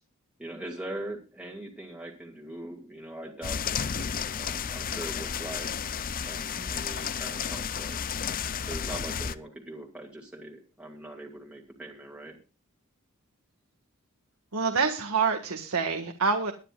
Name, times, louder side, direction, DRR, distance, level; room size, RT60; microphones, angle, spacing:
voice 1, 0.4-3.9 4.2-5.7 6.2-8.0 8.7-12.4, right 1 dB, 5° right, -1 dB, 2.3 m, -41 dB
sound 1, 3.4-9.3, left 7 dB, 40° left, 0.6 m, -32 dB
voice 2, 14.5-16.5, right 5 dB, 70° right, 3 dB, 1.7 m, -27 dB
22.5 x 9.9 x 2.4 m, 0.31 s
head